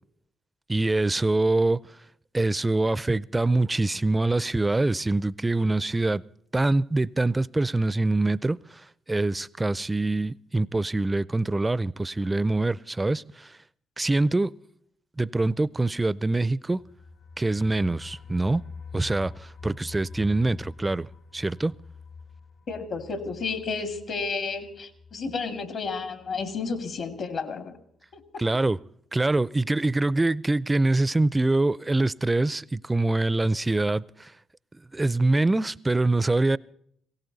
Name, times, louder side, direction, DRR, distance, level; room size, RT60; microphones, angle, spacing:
voice 1, 0.7-1.8 2.3-6.2 6.5-13.6 14.0-14.5 15.2-16.8 17.4-18.6 18.9-21.8 28.4-28.8 29.1-34.3 34.9-36.6, right 2 dB, 20° right, 0.5 m, -24 dB
sound 1, 16.8-27.4 27.7-27.8 28.2-28.3, left 4 dB, 75° left, 3.1 m, -46 dB
voice 2, 22.7-27.7 28.1-28.2, left 4 dB, 60° left, 2.3 m, -32 dB
20.0 x 17.0 x 4.1 m
supercardioid pair, 55°, 0 cm